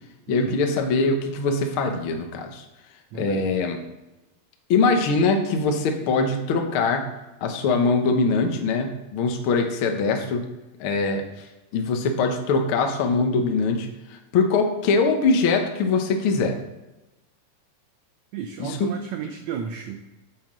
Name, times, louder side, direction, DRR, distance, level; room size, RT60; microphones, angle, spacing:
voice 1, 0.3-2.6 3.1-3.8 4.7-7.1 7.4-10.4 10.8-11.2 11.7-13.9 14.3-16.6 18.6-18.9, left 4 dB, 90° left, 4 dB, 1.1 m, -22 dB
voice 2, 3.1-3.4 18.3-20.0, right 7 dB, 80° right, 5 dB, 1.6 m, -33 dB
8.8 x 7.9 x 3.8 m, 1.0 s
omnidirectional pair, 4.0 m